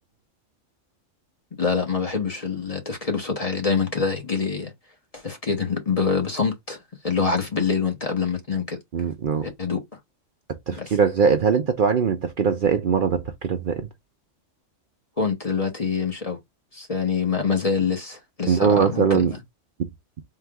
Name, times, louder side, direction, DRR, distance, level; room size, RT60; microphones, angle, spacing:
voice 1, 1.6-4.7 5.1-6.8 7.0-8.8 9.6-9.8 10.8-11.0 15.2-16.4 16.7-19.4, left 5 dB, 30° left, 1.0 m, -25 dB
voice 2, 8.9-9.5 10.7-13.9 18.5-19.3, right 6 dB, 55° right, 0.7 m, -21 dB
3.8 x 2.5 x 4.6 m
omnidirectional pair, 1.3 m